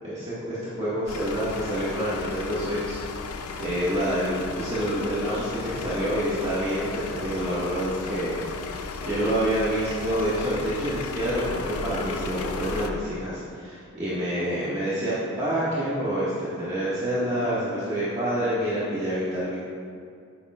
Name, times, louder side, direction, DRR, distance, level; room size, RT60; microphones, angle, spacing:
voice 1, 0.0-8.4 8.7-19.6, equal, 30° right, -11 dB, 1.8 m, -27 dB
sound 1, 1.1-12.9, left 4 dB, 90° left, 0.6 m, -35 dB
12.0 x 9.4 x 2.5 m, 2.3 s
head